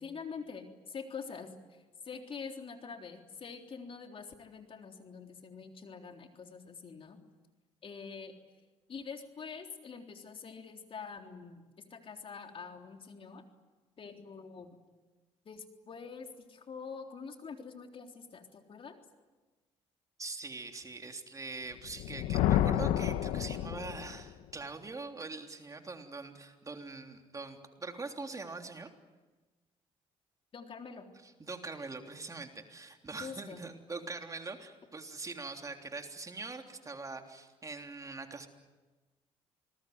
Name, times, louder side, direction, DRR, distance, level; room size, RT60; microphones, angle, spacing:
voice 1, 0.0-7.2 7.8-8.3 8.9-11.6 11.9-13.4 14.0-14.7 15.5-19.0 30.5-31.1 33.2-33.6, left 5 dB, 50° left, 4 dB, 3.7 m, -45 dB
voice 2, 20.2-28.9 31.2-38.5, right 3 dB, 25° right, 4 dB, 3.4 m, -43 dB
Thunder, 21.8-24.3, left 12 dB, 85° left, 1.2 m, -30 dB
27.0 x 21.0 x 9.5 m, 1.2 s
supercardioid pair, 75°, 12 cm